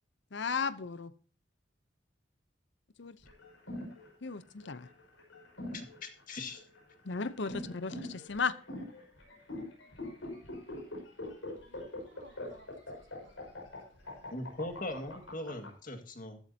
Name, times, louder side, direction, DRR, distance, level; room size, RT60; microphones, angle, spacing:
voice 1, 0.3-1.1 3.0-3.2 4.2-4.9 7.0-8.5, left 5 dB, 65° left, 15 dB, 0.7 m, -35 dB
sound 1, 3.2-15.7, left 1 dB, 90° left, 5.5 m, -43 dB
voice 2, 5.7-6.6 14.3-16.4, left 1 dB, 45° left, 5 dB, 2.0 m, -40 dB
voice 3, 11.4-14.6, right 2 dB, 85° right, 3 dB, 2.9 m, -62 dB
14.0 x 12.5 x 2.8 m, 0.42 s
head